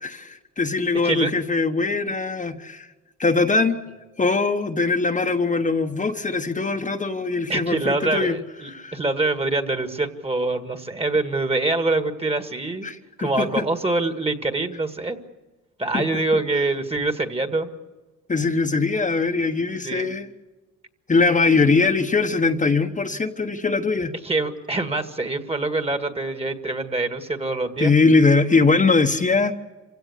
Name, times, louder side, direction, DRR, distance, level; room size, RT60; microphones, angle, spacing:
voice 1, 0.0-2.9 3.2-3.8 4.2-8.4 8.7-9.0 12.8-13.6 15.9-16.1 18.3-20.3 21.1-24.1 27.8-29.5, left 3 dB, 25° left, 4 dB, 1.2 m, -21 dB
voice 2, 7.5-12.9 13.2-15.2 15.8-17.7 19.8-20.1 24.2-27.9, right 2 dB, 20° right, 7 dB, 1.9 m, -25 dB
26.5 x 17.0 x 8.4 m, 1.2 s
cardioid pair, 90°, 30 cm